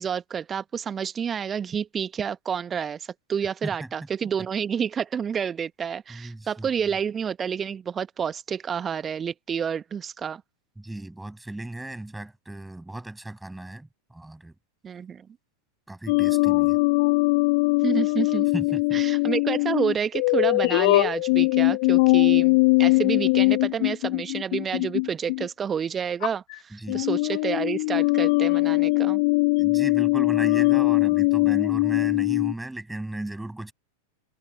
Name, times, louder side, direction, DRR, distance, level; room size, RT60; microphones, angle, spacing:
voice 1, 0.0-10.4 14.8-15.3 17.8-18.5 18.9-29.2, right 7 dB, 20° right, 1.2 m, -29 dB
voice 2, 6.1-6.7 10.8-14.5 15.9-16.8 18.5-19.0 26.7-27.0 29.6-33.7, right 1 dB, 5° right, 7.2 m, -36 dB
sound 1, 16.1-25.5 26.2-26.5 26.9-32.5, left 27 dB, 50° left, 1.3 m, -21 dB
figure-of-eight pair, 90°, 0 cm